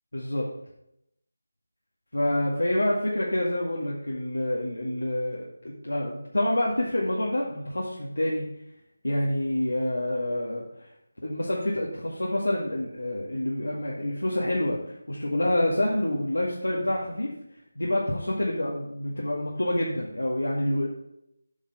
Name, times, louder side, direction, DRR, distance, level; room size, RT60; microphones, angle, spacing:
voice 1, 0.1-0.5 2.1-8.5 9.0-10.6 11.2-17.3 17.8-20.9, left 1 dB, 90° left, -4 dB, 2.0 m, -27 dB
8.5 x 5.9 x 5.7 m, 0.78 s
figure-of-eight pair, 165°, 0 cm